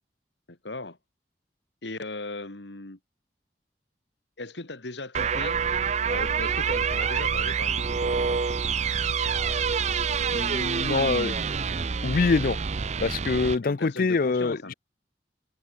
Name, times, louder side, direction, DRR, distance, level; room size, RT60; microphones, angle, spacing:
voice 1, 0.5-1.0 1.8-3.0 4.4-5.6 6.1-8.4 13.6-14.7, left 2 dB, 85° left, 2.3 m, -38 dB
sound 1, 5.1-13.6, right 6 dB, 40° right, 0.5 m, -27 dB
voice 2, 10.3-11.3 12.0-12.6 13.0-14.7, left 4 dB, 55° left, 0.5 m, -25 dB
head